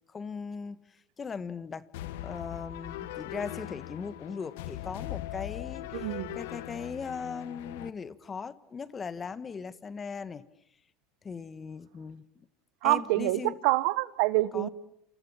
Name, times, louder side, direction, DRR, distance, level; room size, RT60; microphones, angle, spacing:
voice 1, 0.1-1.9 2.2-10.5 11.2-12.3 12.8-13.6 14.5-14.7, left 5 dB, 25° left, 1.5 m, -39 dB
sound 1, 1.9-7.9, left 14 dB, 80° left, 1.4 m, -40 dB
voice 2, 5.9-6.4 12.8-14.7, right 19 dB, 70° right, 1.2 m, -26 dB
28.5 x 28.5 x 7.2 m
supercardioid pair, 120°, 0 cm